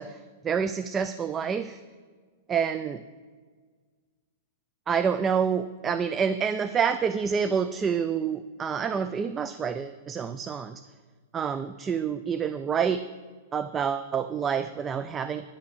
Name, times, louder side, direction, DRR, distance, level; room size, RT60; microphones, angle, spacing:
voice 1, 0.0-1.8 2.5-3.0 4.9-10.8 11.3-13.0 13.5-15.5, right 7 dB, 20° right, 12 dB, 0.4 m, -28 dB
9.9 x 5.9 x 7.9 m, 1.5 s
hypercardioid pair, 130°, 0 cm